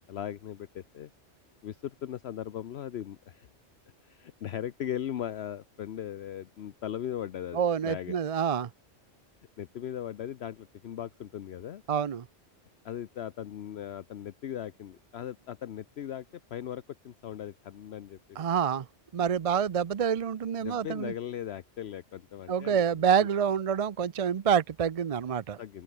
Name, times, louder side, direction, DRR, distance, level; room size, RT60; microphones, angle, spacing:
voice 1, 0.1-1.1 1.6-3.5 4.0-8.2 9.6-11.8 12.8-16.3 16.5-18.4 20.6-22.8 25.6-25.8, left 10 dB, 65° left, 0.9 m, -38 dB
voice 2, 7.5-8.7 11.9-12.2 18.4-18.9 19.1-21.1 22.5-25.6, right 7 dB, 45° right, 0.4 m, -27 dB
open air
omnidirectional pair, 1.2 m